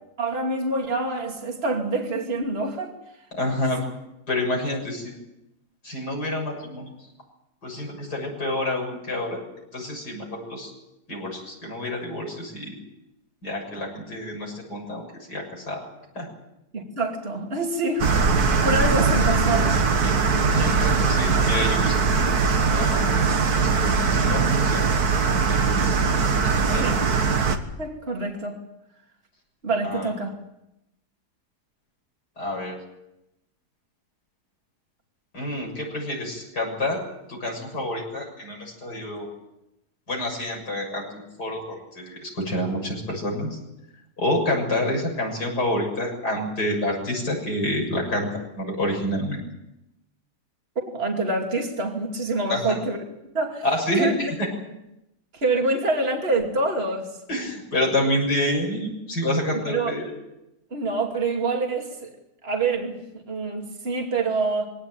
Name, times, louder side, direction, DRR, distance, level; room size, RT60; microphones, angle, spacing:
voice 1, 0.2-2.9 16.7-18.1 18.4-19.8 26.8-27.0 27.8-28.6 29.6-30.3 50.8-53.0 53.3-53.6 54.0-54.1 55.3-57.1 59.7-59.9 60.7-62.1 62.4-63.0 63.3-64.7, right 3 dB, 35° right, 2 dB, 2.9 m, -26 dB
voice 2, 3.3-3.8 4.3-5.2 5.8-6.9 7.6-9.4 9.7-10.7 11.1-12.8 13.4-15.0 15.3-15.8 16.1-16.3 20.4-22.1 22.7-23.1 23.5-24.8 25.5-26.0 26.4-26.9 29.8-30.1 32.4-32.8 35.3-37.0 37.3-39.3 40.1-43.6 44.2-48.3 48.5-49.4 52.5-52.8 53.6-54.5 57.3-60.1, left 1 dB, 85° left, 0 dB, 7.4 m, -28 dB
sound 1, 18.0-27.6, right 4 dB, 70° right, 2.1 m, -21 dB
23.0 x 17.5 x 9.1 m, 0.88 s
omnidirectional pair, 1.7 m